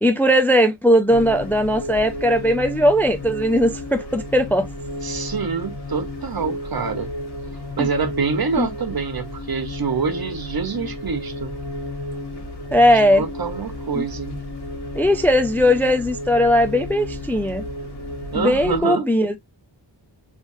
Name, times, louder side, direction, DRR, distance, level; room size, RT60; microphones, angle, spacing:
voice 1, 0.0-4.7 7.8-7.9 8.6-8.7 12.7-13.2 13.9-14.0 15.0-17.6 18.3-19.4, equal, 5° left, 0.4 m, -18 dB
sound 1, 1.1-18.8, left 1 dB, 60° left, 1.5 m, -33 dB
voice 2, 5.0-7.1 7.8-11.6 12.9-14.4 18.3-19.1, right 5 dB, 55° right, 0.8 m, -26 dB
3.3 x 3.1 x 2.6 m
wide cardioid pair, 70°, 45 cm